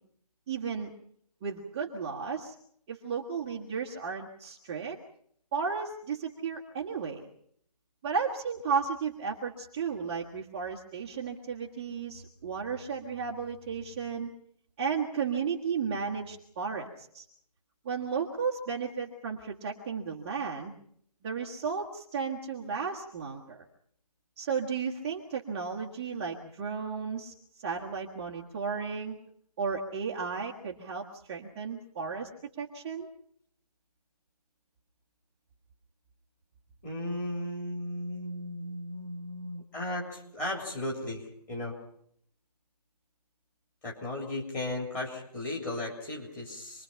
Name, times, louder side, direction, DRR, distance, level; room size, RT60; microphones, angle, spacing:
voice 1, 0.5-0.9 1.4-2.5 2.9-5.0 5.5-7.3 8.0-14.3 14.8-17.2 17.8-20.7 21.2-23.6 24.4-29.2 29.6-32.3 32.6-33.1, right 5 dB, 15° right, -4 dB, 1.4 m, -34 dB
voice 2, 36.8-41.8 43.8-46.8, left 1 dB, 10° left, -1 dB, 3.3 m, -36 dB
27.5 x 21.5 x 5.7 m, 0.68 s
figure-of-eight pair, 165°, 21 cm